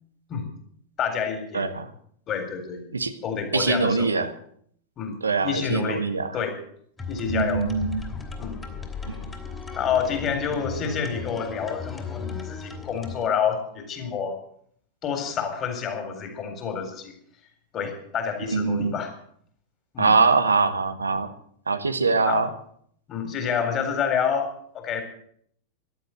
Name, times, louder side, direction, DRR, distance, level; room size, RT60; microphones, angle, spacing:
voice 1, 1.0-1.7 2.3-2.8 3.2-4.3 5.0-5.2 5.4-6.0 6.3-6.6 7.1-7.7 8.4-8.6 9.8-14.4 15.0-17.1 17.7-19.1 19.9-20.2 22.3-22.5 23.1-24.5 24.7-25.0, left 7 dB, 30° left, 6 dB, 4.1 m, -28 dB
voice 2, 1.5-1.9 2.9-3.1 3.5-4.3 5.2-6.3 7.3-8.0 18.5-19.0 20.0-21.3 21.7-22.5, right 4 dB, 75° right, 10 dB, 1.2 m, -23 dB
sound 1, 7.0-13.3, left 4 dB, 15° left, 3.0 m, -35 dB
14.5 x 12.0 x 7.8 m, 0.63 s
figure-of-eight pair, 90°, 0 cm